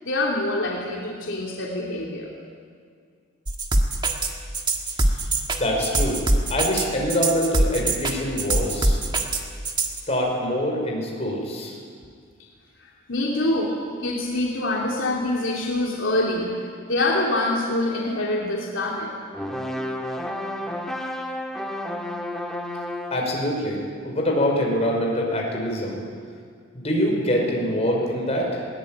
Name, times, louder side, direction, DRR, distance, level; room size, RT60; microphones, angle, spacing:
voice 1, 0.0-2.3 12.8-19.1, left 1 dB, 65° left, -3 dB, 3.1 m, -25 dB
sound 1, 3.5-10.0, right 2 dB, 20° right, 1.6 m, -22 dB
voice 2, 5.6-6.2 6.5-9.0 10.1-11.8 23.1-26.0 26.7-28.6, equal, 30° left, -1 dB, 5.2 m, -24 dB
sound 2, 19.3-23.3, left 1 dB, ahead, 1.7 m, -31 dB
21.5 x 19.0 x 9.1 m, 2.1 s
head